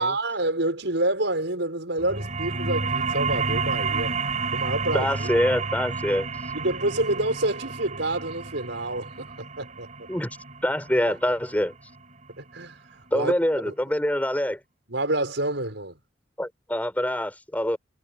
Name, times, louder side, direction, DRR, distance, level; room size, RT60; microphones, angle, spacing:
voice 1, 0.0-4.2 4.5-5.3 6.5-10.1 12.4-12.8 13.1-13.3 13.7-13.8 14.9-16.0, right 2 dB, 75° right, 6.3 m, -28 dB
sound 1, 2.0-13.1, right 4 dB, 40° right, 4.8 m, -31 dB
voice 2, 4.9-6.3 10.1-10.4 10.6-11.7 13.1-14.6 16.4-17.8, equal, 10° left, 4.4 m, -25 dB
head